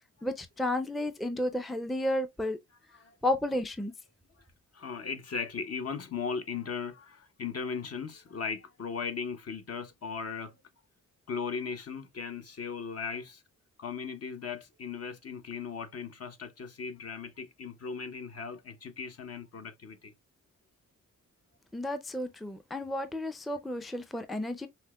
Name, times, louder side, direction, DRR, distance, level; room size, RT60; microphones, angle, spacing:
voice 1, 0.2-2.6 3.2-3.9 21.7-24.7, left 1 dB, ahead, 0.5 m, -32 dB
voice 2, 4.7-10.5 11.3-13.4 13.8-20.1, left 5 dB, 50° left, 0.7 m, -37 dB
5.5 x 2.1 x 2.2 m
cardioid pair, 55°, 32 cm